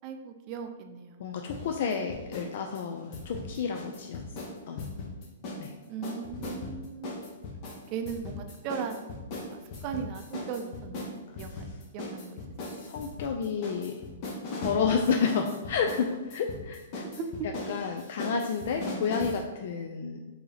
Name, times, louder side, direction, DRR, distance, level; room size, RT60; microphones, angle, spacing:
voice 1, 0.0-1.3 5.9-7.2 7.9-11.7 11.9-12.9 17.1-17.5, right 6 dB, 35° right, 6 dB, 0.4 m, -38 dB
voice 2, 1.2-4.2 4.7-4.9 5.6-5.7 11.5-11.6 12.8-14.0 14.6-17.0 17.7-20.2, left 6 dB, 55° left, 3 dB, 0.3 m, -30 dB
sound 1, 1.5-2.5 2.7-5.7 6.0-19.4, left 2 dB, 35° left, 0.8 m, -39 dB
4.6 x 2.7 x 3.3 m, 1.2 s
hypercardioid pair, 155°, 0 cm